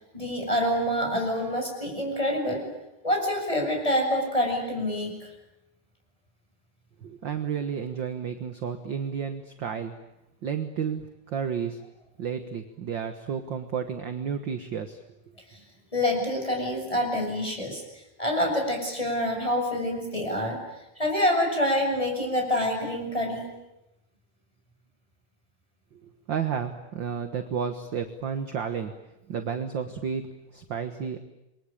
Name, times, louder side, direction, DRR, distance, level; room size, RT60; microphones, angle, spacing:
voice 1, 0.1-2.7 3.0-5.2 15.5-15.6 15.9-17.8 18.2-20.6 21.0-23.5, left 1 dB, 10° left, 2 dB, 7.2 m, -26 dB
voice 2, 7.0-9.9 10.4-11.8 12.2-15.0 26.0-28.9 29.3-31.2, right 7 dB, 50° right, 8 dB, 1.6 m, -32 dB
28.0 x 23.5 x 8.9 m, 0.91 s
omnidirectional pair, 3.6 m